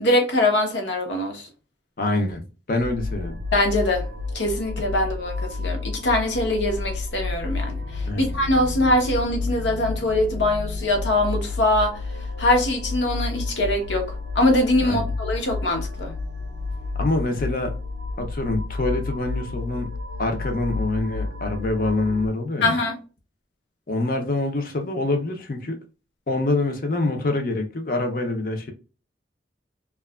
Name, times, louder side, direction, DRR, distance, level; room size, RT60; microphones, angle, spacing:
voice 1, 0.0-1.4 3.5-4.0 4.3-7.8 8.2-12.0 12.4-14.1 14.3-16.1 22.6-22.9, left 1 dB, 80° left, 0.8 m, -22 dB
voice 2, 2.0-2.4 2.7-3.4 8.1-8.3 14.8-15.1 17.0-17.7 18.2-19.9 20.2-22.7 23.9-25.8 26.3-28.7, left 2 dB, 50° left, 0.6 m, -25 dB
sound 1, 2.8-22.3, left 3 dB, 85° right, 0.5 m, -30 dB
2.8 x 2.3 x 2.3 m
head